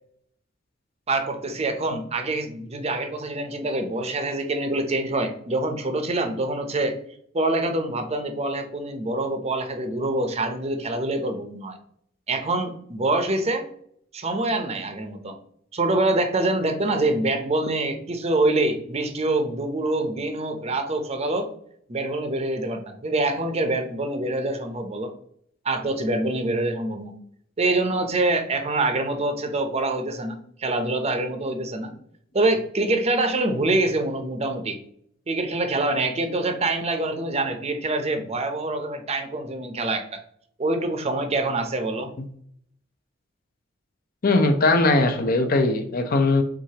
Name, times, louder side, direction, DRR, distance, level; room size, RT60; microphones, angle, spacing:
voice 1, 1.1-7.0 7.3-11.8 12.3-13.7 14.1-15.3 15.7-21.5 21.9-25.1 25.6-27.1 27.6-31.9 32.3-34.8 35.3-40.2 40.6-42.1, right 2 dB, 35° right, 6 dB, 0.6 m, -25 dB
voice 2, 44.2-46.4, left 2 dB, 50° left, 6 dB, 0.6 m, -20 dB
4.8 x 3.8 x 2.8 m, 0.65 s
head